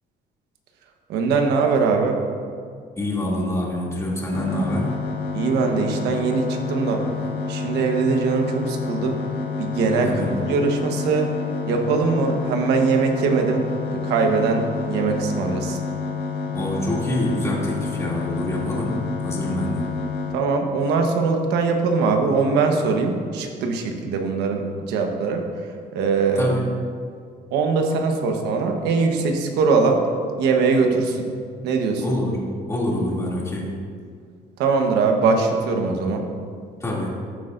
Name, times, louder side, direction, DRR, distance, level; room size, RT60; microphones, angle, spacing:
voice 1, 1.1-2.2 5.3-7.0 7.5-9.2 9.6-11.3 11.7-13.7 13.9-15.8 20.3-25.4 25.9-26.5 27.5-30.1 30.4-31.2 31.6-32.0 34.6-36.3, right 4 dB, 85° right, 3 dB, 1.2 m, -21 dB
voice 2, 3.0-4.9 10.0-10.4 16.5-19.0 19.2-19.9 26.4-26.7 32.0-33.7 36.8-37.1, left 1 dB, 15° left, -4 dB, 2.7 m, -26 dB
sound 1, 4.3-20.3, left 4 dB, 90° left, 1.6 m, -29 dB
14.5 x 8.1 x 2.6 m, 2.1 s
cardioid pair, 110°, 17 cm